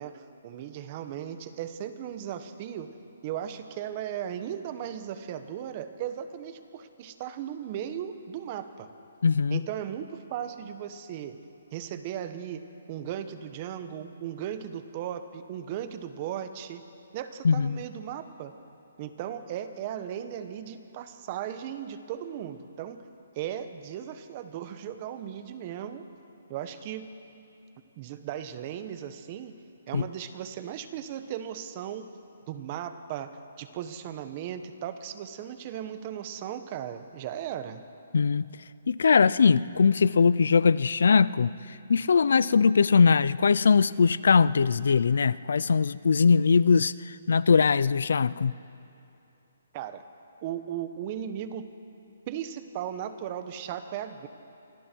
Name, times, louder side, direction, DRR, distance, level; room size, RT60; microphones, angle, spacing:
voice 1, 0.0-2.9 3.2-8.9 9.5-11.4 11.7-12.6 12.9-16.8 17.1-18.5 19.0-23.0 23.3-26.1 26.5-27.0 28.0-29.5 29.9-32.1 32.5-37.8 49.7-50.0 50.4-51.7 52.3-54.3, right 10 dB, 30° right, 10 dB, 1.2 m, -37 dB
voice 2, 9.2-9.6 17.4-17.8 29.9-30.0 38.1-38.4 38.9-41.5 41.9-48.5, left 5 dB, 75° left, 18 dB, 0.5 m, -21 dB
27.5 x 24.5 x 4.6 m, 2.8 s
hypercardioid pair, 160°, 0 cm